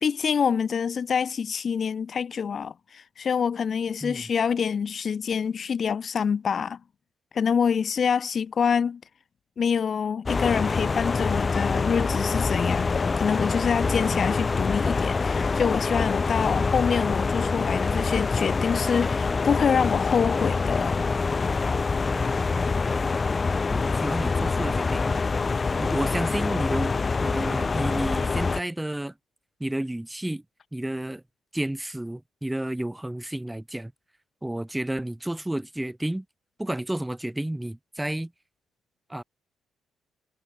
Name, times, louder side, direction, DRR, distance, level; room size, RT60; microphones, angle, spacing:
voice 1, 0.0-6.8 7.3-9.0 9.6-21.0, left 6 dB, 50° left, 0.8 m, -26 dB
sound 1, 10.3-28.6, left 4 dB, 30° left, 0.4 m, -25 dB
voice 2, 22.1-23.1 23.7-25.2 25.8-29.1 29.6-30.4 30.7-31.2 31.5-33.9 34.4-36.2 36.6-38.3 39.1-39.2, right 1 dB, 10° right, 2.8 m, -31 dB
cardioid pair, 90°, 0 cm